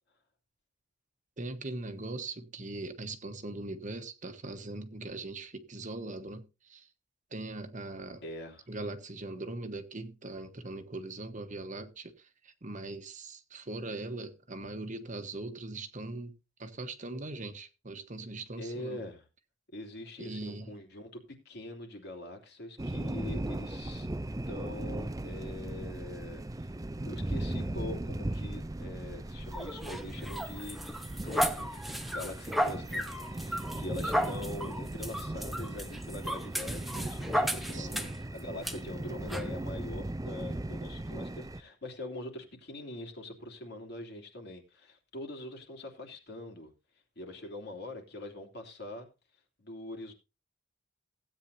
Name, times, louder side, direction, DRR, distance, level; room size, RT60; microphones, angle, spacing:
voice 1, 1.4-6.9 7.3-8.2 8.7-19.0 20.2-20.7 37.7-38.1, right 2 dB, 40° right, 1.2 m, -40 dB
voice 2, 8.2-8.7 18.6-19.2 19.7-24.1 24.5-26.7 27.0-38.0 38.3-46.7 47.2-49.1 49.6-50.1, left 1 dB, 55° left, 3.0 m, -43 dB
sound 1, 22.8-41.6, right 1 dB, 15° right, 0.5 m, -38 dB
sound 2, 29.5-38.2 38.6-38.8 39.3-39.5, equal, ahead, 1.0 m, -34 dB
16.5 x 9.0 x 2.7 m
head